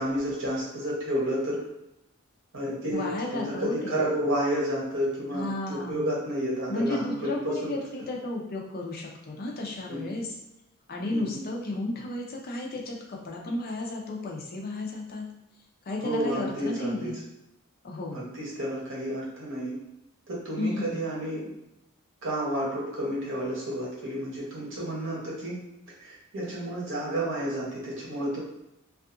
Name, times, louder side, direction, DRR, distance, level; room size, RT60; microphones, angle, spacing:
voice 1, 0.0-1.6 2.5-8.1 9.9-10.3 11.1-11.4 16.0-17.1 18.1-19.8 20.3-21.5 22.2-25.6 26.0-28.4, equal, 65° right, -5 dB, 1.0 m, -31 dB
voice 2, 2.9-4.0 5.3-6.1 6.7-10.3 10.9-15.3 15.9-17.2 17.8-18.2 20.6-21.0, left 2 dB, 45° left, -1 dB, 0.5 m, -33 dB
2.7 x 2.3 x 2.5 m, 0.86 s
head